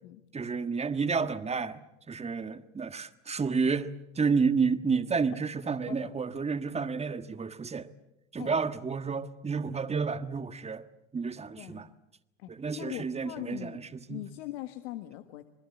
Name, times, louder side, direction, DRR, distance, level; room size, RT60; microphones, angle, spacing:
voice 1, 0.3-1.8 2.1-7.9 8.3-10.8 11.1-11.9 12.5-13.8 14.1-14.2, right 5 dB, 20° right, 1.5 m, -30 dB
voice 2, 5.9-6.2 8.4-8.5 11.6-11.8 12.4-15.5, left 15 dB, 70° left, 1.6 m, -41 dB
27.0 x 20.5 x 8.4 m
hypercardioid pair, 90°, 35 cm